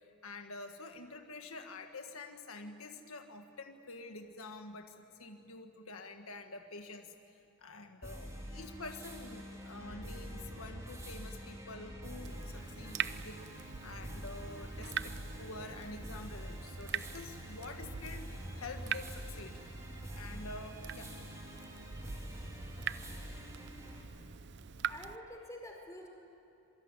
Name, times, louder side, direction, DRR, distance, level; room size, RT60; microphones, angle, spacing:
voice 1, 0.0-19.6 20.1-21.1, left 2 dB, 75° left, 5 dB, 1.6 m, -48 dB
sound 1, 8.0-24.0, equal, 15° right, 3.7 m, -46 dB
Water tap faucet / Drip, 12.2-25.2, right 8 dB, 50° right, 0.6 m, -44 dB
voice 2, 24.9-26.1, left 1 dB, 15° left, 1 dB, 4.9 m, -47 dB
26.5 x 23.0 x 9.7 m, 2.9 s
head